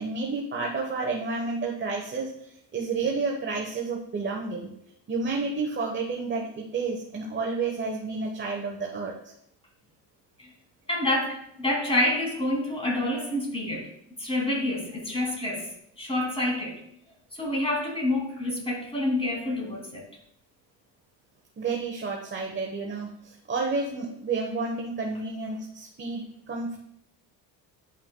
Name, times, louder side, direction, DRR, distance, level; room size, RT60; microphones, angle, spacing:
voice 1, 0.0-4.7 5.1-9.3 21.6-26.8, right 4 dB, 30° right, 0 dB, 1.0 m, -30 dB
voice 2, 10.9-13.9 14.2-15.7 16.0-16.8 17.3-20.0, left 1 dB, 15° left, -2 dB, 2.5 m, -28 dB
10.5 x 5.6 x 2.2 m, 0.74 s
cardioid pair, 100°, 40 cm